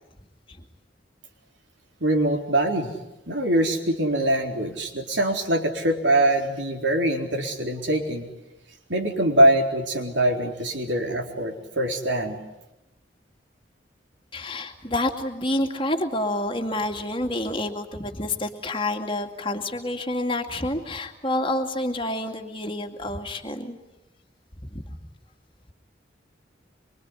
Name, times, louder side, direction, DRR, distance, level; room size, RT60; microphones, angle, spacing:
voice 1, 2.0-2.9 3.3-8.3 8.9-12.4, right 1 dB, 75° right, 3 dB, 4.0 m, -23 dB
voice 2, 14.3-23.8 24.6-25.0, left 1 dB, 25° left, 4 dB, 2.4 m, -28 dB
24.5 x 24.5 x 9.9 m, 0.96 s
head